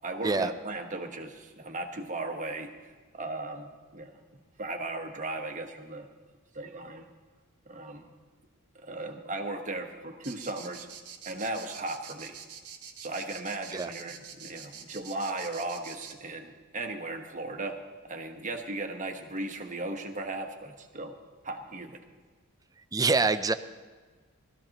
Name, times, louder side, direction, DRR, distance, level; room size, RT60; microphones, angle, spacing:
voice 1, 0.0-2.7 3.1-4.1 4.6-6.1 6.5-7.1 7.7-8.1 8.8-10.9 11.2-12.4 13.0-17.8 18.0-21.1 21.4-22.0, right 2 dB, 35° right, 4 dB, 1.2 m, -36 dB
sound 1, 10.2-16.1, right 7 dB, 85° right, 1.3 m, -45 dB
voice 2, 22.9-23.5, right 3 dB, 15° right, 11 dB, 0.4 m, -25 dB
19.5 x 14.0 x 3.0 m, 1.4 s
head